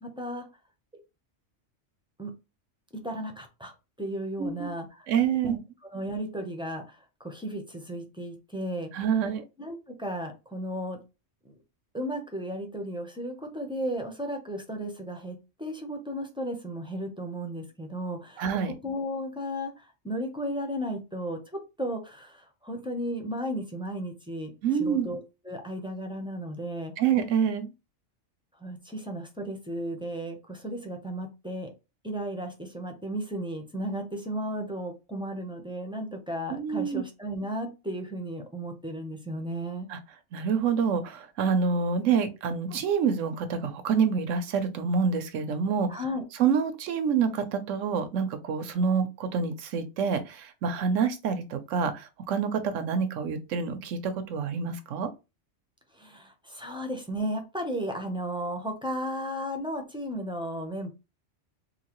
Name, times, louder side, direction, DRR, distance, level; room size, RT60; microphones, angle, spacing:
voice 1, 0.0-0.5 2.2-2.3 3.0-3.7 4.0-5.1 5.4-5.6 5.9-8.9 9.6-11.0 11.9-18.5 18.8-21.4 21.8-24.5 24.8-26.9 28.6-31.7 32.0-39.9 45.9-46.2 55.9-60.9, equal, 5° right, 0.5 m, -34 dB
voice 2, 4.4-4.7 5.1-5.6 8.9-9.4 18.4-18.7 24.6-25.1 27.0-27.7 36.5-37.0 39.9-40.0 40.3-45.9 46.4-55.1, right 6 dB, 90° right, 1.0 m, -27 dB
3.8 x 2.7 x 3.0 m
omnidirectional pair, 1.3 m